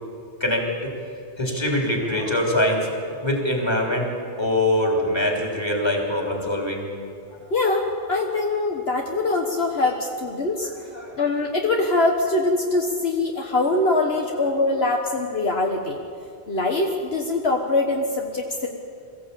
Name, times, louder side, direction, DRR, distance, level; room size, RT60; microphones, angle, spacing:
voice 1, 0.4-0.9 1.4-4.1 4.4-6.9 10.9-11.2, left 1 dB, 25° left, 0 dB, 3.6 m, -23 dB
voice 2, 7.5-10.7 11.2-16.0 16.5-18.7, left 2 dB, 65° left, 1 dB, 1.6 m, -23 dB
23.0 x 15.0 x 8.5 m, 2.5 s
omnidirectional pair, 1.1 m